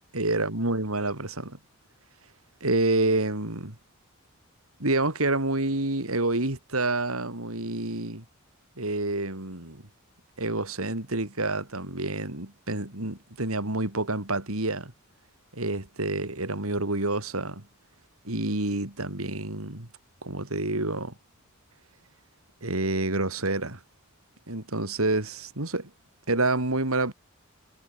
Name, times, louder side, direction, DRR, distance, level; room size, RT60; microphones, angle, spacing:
voice 1, 0.1-1.6 2.6-3.8 4.8-8.2 8.8-9.8 10.4-14.9 15.5-17.7 18.2-19.9 20.2-21.2 22.6-23.8 24.5-25.9 26.3-27.1, right 2 dB, 85° right, 4.1 m, -28 dB
head